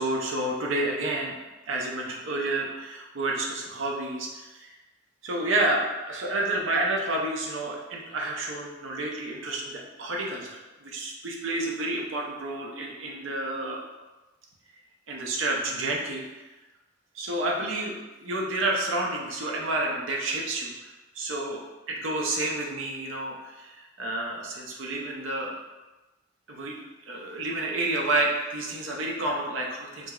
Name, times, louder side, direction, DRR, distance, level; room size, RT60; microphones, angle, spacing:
voice 1, 0.0-1.4 1.7-4.7 5.2-13.9 15.1-16.5 17.1-21.6 21.9-25.6 26.5-26.8 27.1-30.1, right 2 dB, 90° right, -1 dB, 0.6 m, -30 dB
4.7 x 2.6 x 2.3 m, 1.1 s
head